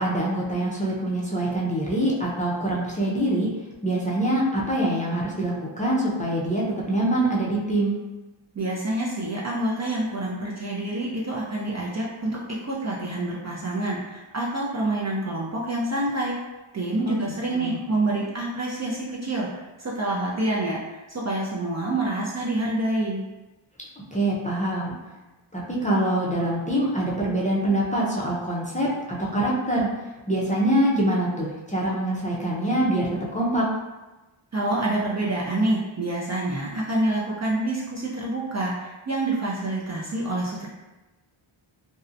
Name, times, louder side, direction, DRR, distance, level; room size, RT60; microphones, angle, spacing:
voice 1, 0.0-3.5 3.8-8.0 17.1-17.2 17.5-17.8 24.1-24.9 25.5-29.9 30.3-33.6, right 1 dB, 15° left, -5 dB, 0.5 m, -24 dB
voice 2, 8.6-16.4 16.7-23.2 34.5-40.7, right 2 dB, 35° right, -5 dB, 0.4 m, -27 dB
2.6 x 2.1 x 2.5 m, 1.1 s
wide cardioid pair, 70°, 49 cm